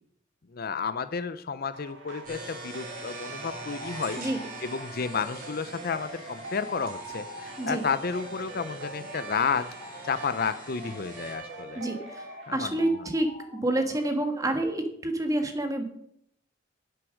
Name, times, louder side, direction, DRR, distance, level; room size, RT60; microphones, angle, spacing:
voice 1, 0.5-4.2 4.6-9.7 10.0-11.8 12.5-12.9, left 5 dB, 50° left, 12 dB, 0.6 m, -31 dB
sound 1, 1.7-12.5, right 2 dB, 70° right, 2.6 m, -44 dB
sound 2, 2.2-11.3, right 2 dB, 45° right, 3.3 m, -44 dB
sound 3, 2.6-14.6, left 1 dB, 20° left, 2.8 m, -48 dB
voice 2, 11.7-15.8, right 1 dB, 15° right, 5 dB, 1.4 m, -28 dB
10.0 x 7.8 x 6.3 m, 0.73 s
head